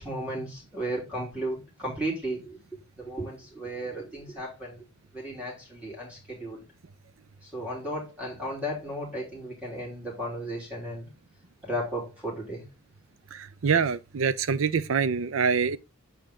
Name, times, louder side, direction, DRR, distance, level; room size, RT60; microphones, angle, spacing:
voice 1, 0.0-2.6 3.0-4.8 5.1-6.6 7.5-11.1 11.6-12.6, right 1 dB, 5° right, 3.1 m, -34 dB
voice 2, 13.3-15.8, right 6 dB, 70° right, 0.5 m, -25 dB
7.1 x 4.5 x 3.7 m
head